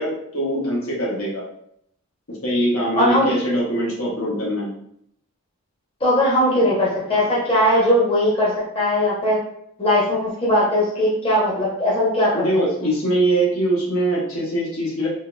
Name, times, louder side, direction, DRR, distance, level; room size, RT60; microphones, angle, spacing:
voice 1, 0.0-1.4 2.3-4.7 12.3-15.1, right 1 dB, 80° left, -5 dB, 1.1 m, -22 dB
voice 2, 2.9-3.3 6.0-9.4 9.8-12.9, left 1 dB, 25° left, -6 dB, 0.9 m, -19 dB
3.8 x 2.5 x 2.3 m, 0.71 s
head